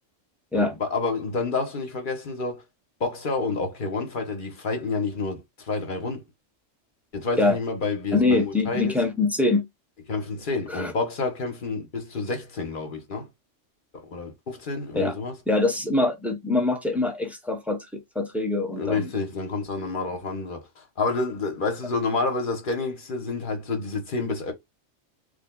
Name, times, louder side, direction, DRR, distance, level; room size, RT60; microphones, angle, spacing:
voice 1, 0.5-2.6 3.0-6.2 7.1-9.0 10.1-13.3 13.9-15.3 18.8-24.5, left 3 dB, 45° left, 1.2 m, -29 dB
voice 2, 8.1-9.7 10.7-10.9 14.9-15.1 15.5-19.1, left 2 dB, ahead, 0.6 m, -24 dB
3.4 x 2.3 x 3.7 m
omnidirectional pair, 1.3 m